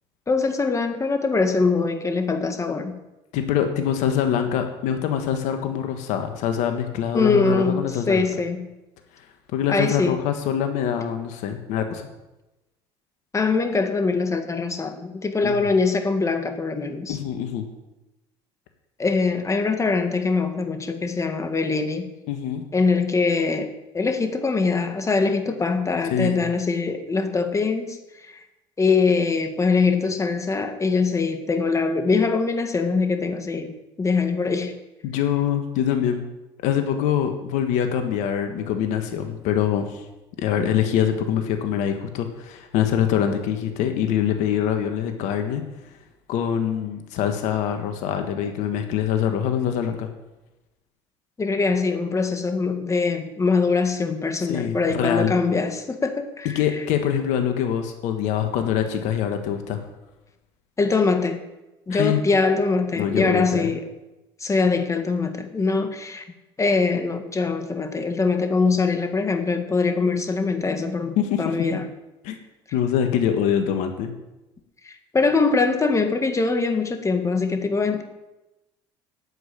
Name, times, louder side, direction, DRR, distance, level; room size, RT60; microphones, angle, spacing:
voice 1, 0.3-3.0 7.1-8.7 9.7-10.2 13.3-17.2 19.0-22.1 22.7-28.4 28.8-34.7 51.4-56.6 60.8-61.4 61.9-63.9 64.4-66.3 66.6-71.9 74.8-78.0, left 4 dB, 25° left, 6 dB, 1.8 m, -23 dB
voice 2, 3.3-8.3 9.5-12.1 15.4-15.7 17.1-17.7 22.3-22.6 26.1-26.4 35.0-36.2 36.6-40.0 40.4-45.6 46.3-50.1 54.5-55.3 56.5-59.8 61.9-62.2 62.9-63.7 71.2-71.4 72.2-72.4 72.7-74.1, left 9 dB, 70° left, 6 dB, 1.5 m, -24 dB
9.0 x 8.5 x 8.7 m, 1.0 s
supercardioid pair, 75°, 13 cm